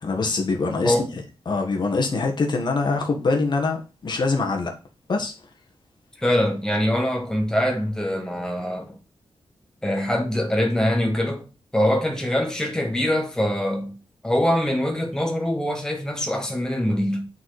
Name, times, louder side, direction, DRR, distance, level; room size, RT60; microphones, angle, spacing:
voice 1, 0.0-4.7 5.1-5.3, left 3 dB, 50° left, 1.5 m, -24 dB
voice 2, 6.2-8.9 9.8-11.5 11.7-14.0 14.2-17.3, left 1 dB, 5° left, 1.3 m, -23 dB
9.3 x 4.3 x 4.8 m
wide cardioid pair, 165°, 10 cm